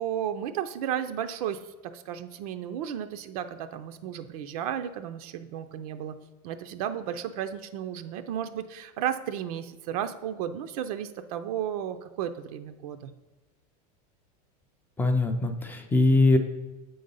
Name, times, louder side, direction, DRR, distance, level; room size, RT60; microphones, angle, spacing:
voice 1, 0.0-6.1 6.4-13.1, right 9 dB, 70° right, 9 dB, 0.5 m, -33 dB
voice 2, 15.0-16.4, left 2 dB, 10° left, 6 dB, 0.4 m, -22 dB
7.5 x 3.9 x 5.4 m, 1.1 s
supercardioid pair, 150°, 20 cm